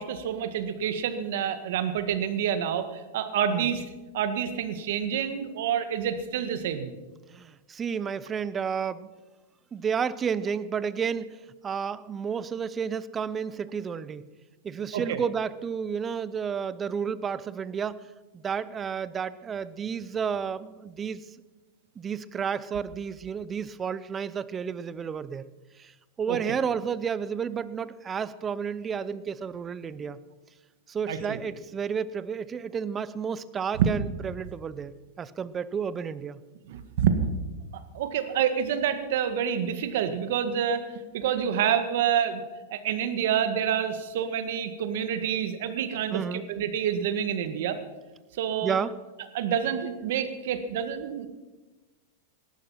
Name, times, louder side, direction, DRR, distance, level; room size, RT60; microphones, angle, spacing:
voice 1, 0.0-3.8 4.1-6.9 14.9-15.2 26.3-26.4 31.1-31.4 33.8-33.9 36.7-37.1 37.7-40.8 41.1-42.4 42.7-47.8 48.4-48.8 49.3-51.3, right 8 dB, 65° right, 9 dB, 1.8 m, -28 dB
voice 2, 7.3-9.1 9.7-14.3 14.6-18.0 18.3-21.2 22.0-25.4 25.8-25.9 26.2-30.2 30.9-36.4 46.1-46.5 48.6-48.9, right 7 dB, 20° right, 16 dB, 0.6 m, -31 dB
17.5 x 12.0 x 5.8 m, 1.2 s
supercardioid pair, 150°, 0 cm